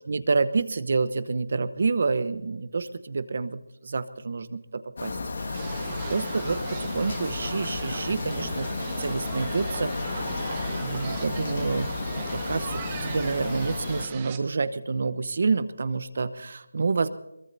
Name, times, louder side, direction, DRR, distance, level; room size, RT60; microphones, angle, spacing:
voice 1, 0.1-5.1 5.4-8.7 9.0-10.3 10.8-11.9 12.3-17.1, right 4 dB, 50° right, 12 dB, 0.9 m, -28 dB
sound 1, 5.0-14.1, left 3 dB, 55° left, 1.6 m, -32 dB
sound 2, 5.5-14.4, right 7 dB, 20° right, 1.4 m, -39 dB
22.5 x 22.0 x 2.7 m, 0.95 s
figure-of-eight pair, 165°, 0 cm